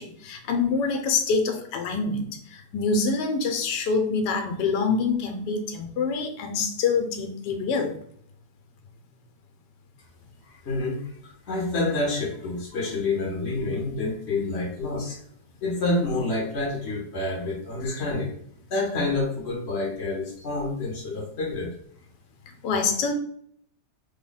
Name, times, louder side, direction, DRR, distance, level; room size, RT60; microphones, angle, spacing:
voice 1, 0.0-8.0 22.5-23.1, left 4 dB, 90° left, 6 dB, 1.2 m, -26 dB
voice 2, 10.4-11.1 11.5-15.2 15.6-18.3 18.7-21.7, left 2 dB, 50° left, -2 dB, 0.9 m, -28 dB
3.3 x 2.1 x 3.8 m, 0.64 s
omnidirectional pair, 1.8 m